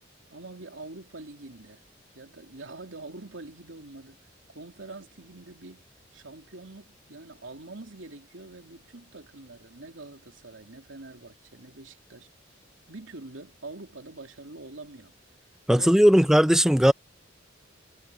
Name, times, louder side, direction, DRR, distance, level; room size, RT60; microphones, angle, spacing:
voice 1, 0.3-1.8 2.1-4.2 4.5-5.9 6.1-12.3 12.9-15.1 15.7-15.9, right 2 dB, 80° right, 3.0 m, -44 dB
voice 2, 15.7-16.9, equal, 5° right, 0.5 m, -18 dB
head